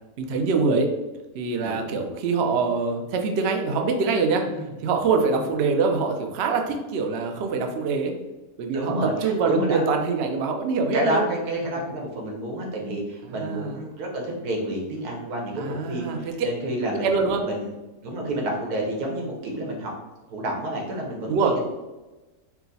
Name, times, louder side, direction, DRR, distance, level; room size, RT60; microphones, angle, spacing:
voice 1, 0.2-0.9 1.3-4.4 4.8-8.1 8.6-11.2 13.4-13.8 15.6-16.2 17.0-17.4 21.3-21.5, right 4 dB, 65° right, 3 dB, 0.6 m, -24 dB
voice 2, 8.7-9.8 10.9-17.6 18.0-19.9 20.3-21.6, right 1 dB, 85° right, -1 dB, 1.5 m, -29 dB
4.5 x 2.1 x 3.9 m, 1.1 s
omnidirectional pair, 1.6 m